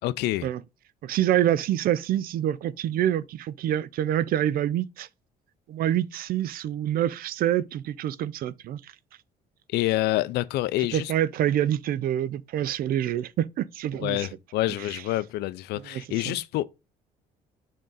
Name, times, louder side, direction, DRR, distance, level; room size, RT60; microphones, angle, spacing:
voice 1, 0.0-0.5 9.7-11.1 14.0-16.6, left 16 dB, 80° left, 0.5 m, -27 dB
voice 2, 1.0-5.1 5.7-8.9 10.8-14.3 14.9-15.0 15.9-16.3, right 11 dB, 60° right, 0.5 m, -26 dB
6.4 x 3.8 x 4.0 m
cardioid pair, 110°, 17 cm